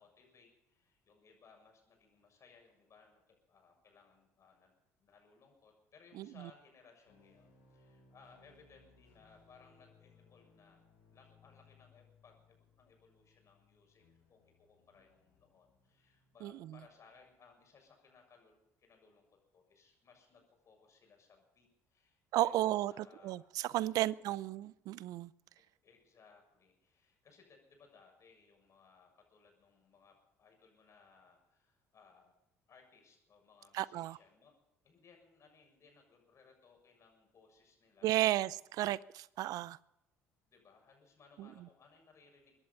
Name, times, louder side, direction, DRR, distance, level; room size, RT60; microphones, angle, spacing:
voice 1, 0.0-4.7 5.0-19.3 19.5-23.5 23.9-24.4 25.8-32.3 32.7-34.5 34.8-38.9 40.5-42.6, left 5 dB, 45° left, 6.9 m, -64 dB
voice 2, 6.2-6.5 16.4-16.7 22.3-25.3 33.7-34.2 38.0-39.8 41.4-41.5, right 15 dB, 65° right, 0.5 m, -34 dB
sound 1, 7.0-17.3, left 4 dB, 80° left, 6.6 m, -67 dB
23.5 x 11.0 x 5.6 m
hypercardioid pair, 60°, 7 cm